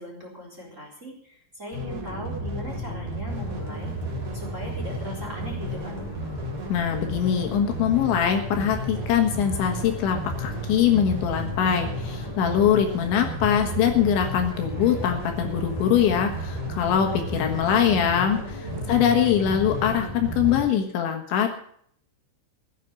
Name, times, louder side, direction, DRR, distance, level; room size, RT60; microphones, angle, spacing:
voice 1, 0.0-6.3 17.3-18.0 18.5-19.0, equal, 15° right, -1 dB, 3.6 m, -40 dB
sound 1, 1.7-20.6, equal, 45° right, 4.6 m, -32 dB
sound 2, 3.3-19.8, left 1 dB, 10° left, 4.5 m, -47 dB
voice 2, 6.7-21.5, left 9 dB, 70° left, 4 dB, 3.6 m, -23 dB
15.5 x 9.2 x 7.0 m, 0.64 s
omnidirectional pair, 5.9 m